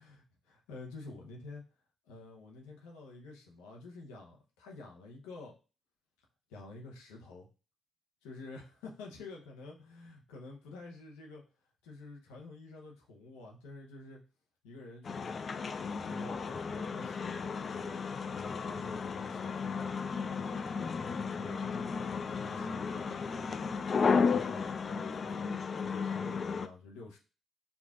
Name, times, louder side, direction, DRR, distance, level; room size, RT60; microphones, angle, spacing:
voice 1, 0.0-1.6 2.0-5.5 6.5-7.5 8.2-11.4 11.8-14.2 14.6-15.4 15.8-18.0 18.3-23.7 24.0-27.2, left 3 dB, 85° left, -1 dB, 0.8 m, -49 dB
sound 1, 15.0-26.7, left 5 dB, 50° left, 0.3 m, -34 dB
4.8 x 2.5 x 2.4 m, 0.34 s
hypercardioid pair, 45°, 0 cm